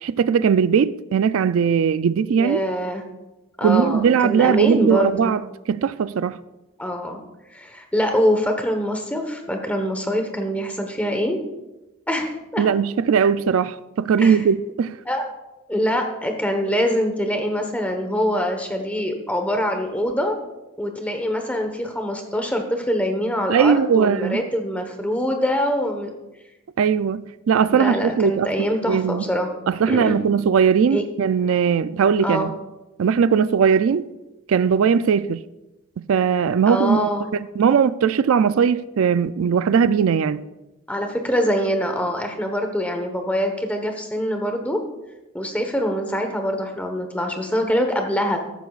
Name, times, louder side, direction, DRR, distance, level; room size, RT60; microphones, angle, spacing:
voice 1, 0.0-2.6 3.6-5.4 5.7-6.4 12.6-15.0 23.5-24.4 26.8-28.5 28.9-29.2 29.7-32.5 33.0-34.1 34.5-35.4 36.0-37.1 37.6-40.4, right 7 dB, 80° right, 0.4 m, -19 dB
voice 2, 2.3-3.0 3.6-5.3 6.8-7.2 7.5-11.4 12.1-12.6 14.2-14.4 15.1-15.3 15.7-20.4 20.8-26.1 27.7-29.5 29.9-30.2 30.9-31.0 32.2-32.5 36.7-37.3 40.9-44.8 45.3-48.4, equal, 5° left, 1.1 m, -24 dB
14.0 x 11.5 x 2.4 m
head